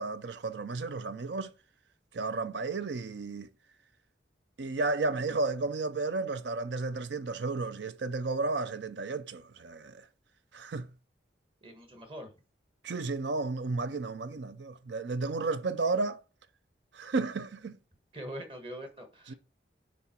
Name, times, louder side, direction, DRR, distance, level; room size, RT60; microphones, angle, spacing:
voice 1, 0.0-1.5 2.1-3.5 4.6-10.0 10.5-10.9 12.8-16.2 16.9-17.8 19.3-19.4, right 3 dB, 70° right, 0.5 m, -33 dB
voice 2, 11.6-12.3 18.1-19.3, equal, 30° right, 1.4 m, -43 dB
9.7 x 3.7 x 4.3 m
head